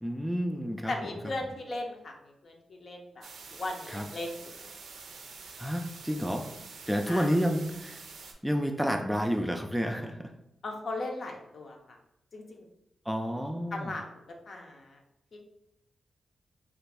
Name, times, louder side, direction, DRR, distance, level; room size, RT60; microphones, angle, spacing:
voice 1, 0.0-1.1 3.9-4.0 5.6-6.5 6.9-8.0 8.4-10.3 13.1-13.9, equal, 5° right, 4 dB, 0.3 m, -30 dB
voice 2, 0.9-2.1 2.4-4.6 7.1-7.3 10.6-11.8 12.3-12.6 13.7-14.1 14.5-15.0 15.3-15.4, left 2 dB, 60° left, 2 dB, 0.6 m, -37 dB
sound 1, 3.2-8.3, right 4 dB, 85° right, 0.4 m, -47 dB
3.0 x 2.4 x 3.4 m, 0.82 s
cardioid pair, 85°, 0 cm